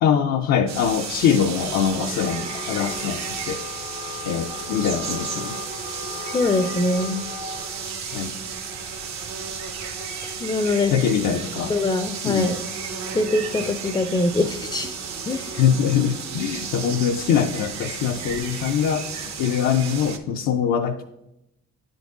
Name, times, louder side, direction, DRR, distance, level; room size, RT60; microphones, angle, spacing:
voice 1, 0.0-3.6 4.2-5.6 8.1-8.4 10.9-11.7 12.2-12.5 15.5-19.1 19.4-21.0, left 8 dB, 75° left, 2 dB, 0.5 m, -23 dB
sound 1, 0.7-20.2, right 6 dB, 65° right, 0.8 m, -33 dB
Wind instrument woodwind instrument, 2.1-7.7, left 5 dB, 90° left, 1.3 m, -37 dB
voice 2, 6.3-7.2 10.4-10.9 11.7-12.6 13.1-15.0 15.3-15.5, left 2 dB, 15° left, 7 dB, 0.4 m, -23 dB
9.7 x 3.9 x 3.5 m, 0.86 s
cardioid pair, 90°, 30 cm